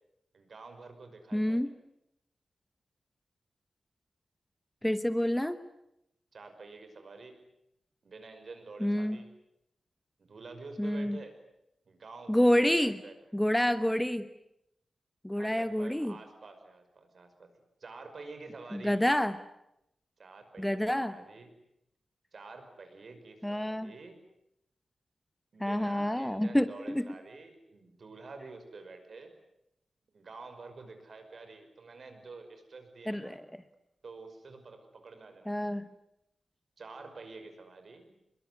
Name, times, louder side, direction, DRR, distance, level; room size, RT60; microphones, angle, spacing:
voice 1, 0.3-1.7 6.3-7.4 8.0-9.3 10.2-11.4 11.9-13.1 15.4-17.5 17.8-19.0 20.2-21.5 22.3-24.2 25.5-29.3 30.1-33.4 34.0-35.8 36.8-38.1, right 3 dB, 55° right, 7 dB, 5.7 m, -48 dB
voice 2, 1.3-1.7 4.8-5.6 8.8-9.2 10.8-11.2 12.3-13.0 13.3-14.3 15.2-16.1 18.7-19.4 20.6-21.2 23.4-23.9 25.6-27.1 33.1-33.6 35.5-35.8, equal, 5° left, 12 dB, 1.0 m, -28 dB
26.5 x 22.5 x 9.6 m, 0.81 s
wide cardioid pair, 115°, 0 cm